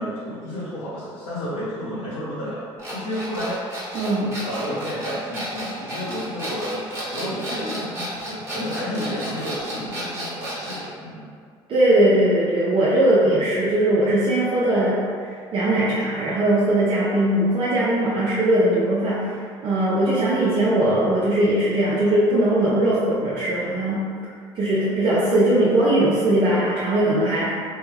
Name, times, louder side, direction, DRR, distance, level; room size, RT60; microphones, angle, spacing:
voice 1, 0.0-3.7 4.1-11.3, equal, 80° left, -13 dB, 0.9 m, -31 dB
sound 1, 2.8-10.9, right 1 dB, 25° right, 1.3 m, -32 dB
voice 2, 3.9-4.4 11.7-15.1 15.5-19.4 19.6-24.0 24.6-27.6, right 1 dB, 50° right, -8 dB, 0.7 m, -20 dB
3.2 x 2.3 x 3.2 m, 2.1 s
supercardioid pair, 90°, 11 cm